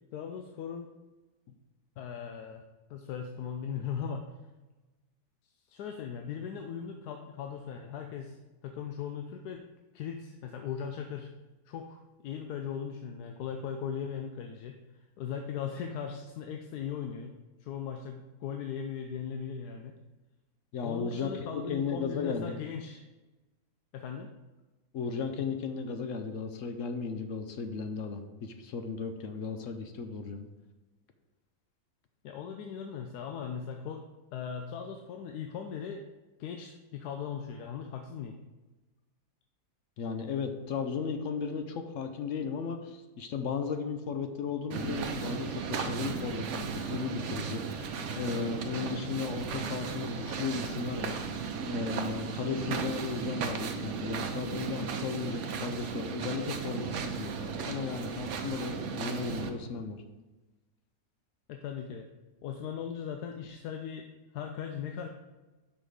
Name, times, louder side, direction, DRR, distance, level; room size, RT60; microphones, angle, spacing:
voice 1, 0.1-0.9 1.5-1.6 2.0-2.6 2.9-4.2 5.7-8.4 8.6-9.7 9.9-11.3 11.7-14.8 15.2-17.3 17.6-20.0 20.8-23.0 23.9-24.3 32.2-34.0 34.3-36.1 36.4-38.4 61.5-62.1 62.4-65.1, left 7 dB, 80° left, 4 dB, 1.1 m, -38 dB
voice 2, 20.7-22.5 24.9-30.5 40.0-51.2 51.7-60.0, left 5 dB, 65° left, 7 dB, 0.9 m, -35 dB
sound 1, 44.7-59.5, right 5 dB, 60° right, 0.9 m, -35 dB
6.1 x 5.2 x 4.8 m, 1.1 s
omnidirectional pair, 1.7 m